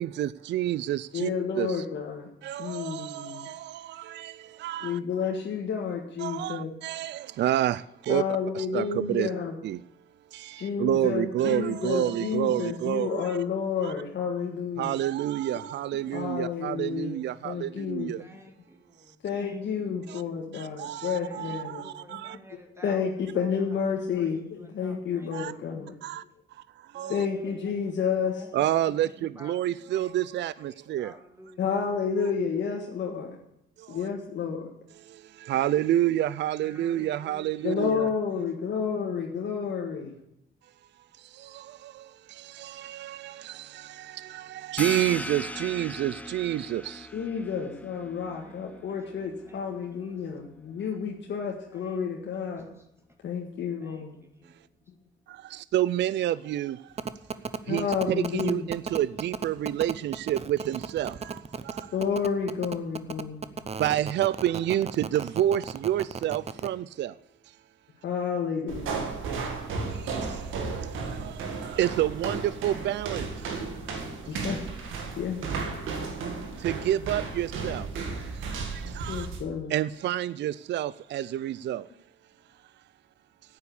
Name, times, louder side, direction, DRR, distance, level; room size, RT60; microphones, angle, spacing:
voice 1, 0.0-1.3 1.6-1.8 2.4-5.0 6.2-8.2 8.5-9.3 9.6-9.8 10.3-13.4 13.8-13.9 14.8-18.2 20.1-20.2 20.5-22.4 25.3-25.5 26.0-26.2 26.5-27.3 28.5-31.1 33.8-34.1 35.0-38.1 41.2-47.1 55.3-56.9 57.7-62.0 63.7-67.2 67.5-67.6 69.9-73.7 76.6-77.9 78.3-79.3 79.7-81.9, right 12 dB, 65° right, 0.5 m, -29 dB
voice 2, 1.1-2.3 2.6-3.4 4.8-6.7 8.1-9.5 10.6-15.0 16.1-17.2 17.4-18.1 19.2-21.8 22.1-22.2 22.8-25.9 27.1-28.4 31.6-33.4 33.9-34.7 37.6-40.1 47.1-52.7 53.2-54.2 57.7-58.7 61.9-63.5 68.0-69.1 74.3-74.6 75.2-75.5 79.1-79.7, left 6 dB, 65° left, 1.7 m, -30 dB
voice 3, 18.2-20.2 21.2-23.1 23.3-23.5 23.9-26.0 26.9-28.0 28.2-30.1 30.6-31.8 36.6-38.5 48.3-50.3 51.7-52.8 53.8-54.6, right 1 dB, 15° right, 1.8 m, -52 dB
sound 1, 44.8-50.1, left 2 dB, 5° left, 0.6 m, -39 dB
sound 2, 57.0-66.7, right 6 dB, 30° right, 0.7 m, -34 dB
sound 3, 68.7-79.4, right 4 dB, 85° right, 2.2 m, -34 dB
9.2 x 8.6 x 8.3 m
cardioid pair, 90°, 20 cm